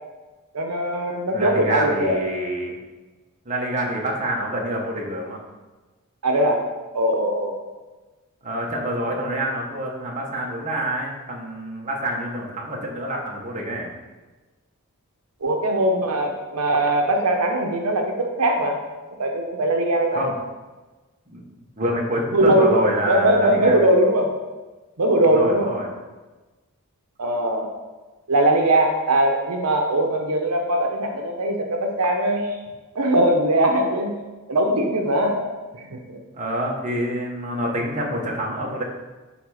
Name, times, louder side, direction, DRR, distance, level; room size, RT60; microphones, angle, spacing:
voice 1, 0.5-2.2 6.2-6.6 6.9-7.5 9.1-9.2 15.4-18.8 19.2-20.2 22.3-24.3 25.0-25.7 27.2-27.7 28.3-32.5 32.9-34.1 34.5-35.4 35.7-36.2, right 1 dB, 85° right, 2 dB, 0.9 m, -20 dB
voice 2, 1.3-2.7 3.4-5.4 8.4-13.9 20.1-20.3 21.3-21.4 21.8-23.8 25.2-25.9 36.3-38.8, right 1 dB, 35° right, -2 dB, 1.3 m, -27 dB
10.0 x 3.6 x 4.9 m, 1.2 s
head